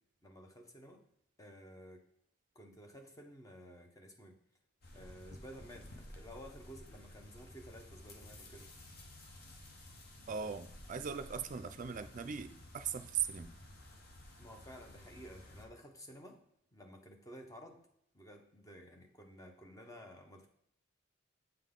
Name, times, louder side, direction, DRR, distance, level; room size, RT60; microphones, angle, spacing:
voice 1, 0.2-1.0 1.4-2.0 2.5-4.3 4.9-8.7 14.4-16.4 16.7-17.8 18.1-20.5, equal, 20° left, 3 dB, 0.8 m, -53 dB
sound 1, 4.8-15.7, left 1 dB, 55° left, 0.9 m, -54 dB
voice 2, 10.3-13.5, right 7 dB, 40° right, 10 dB, 0.4 m, -39 dB
7.7 x 3.8 x 3.7 m, 0.74 s
head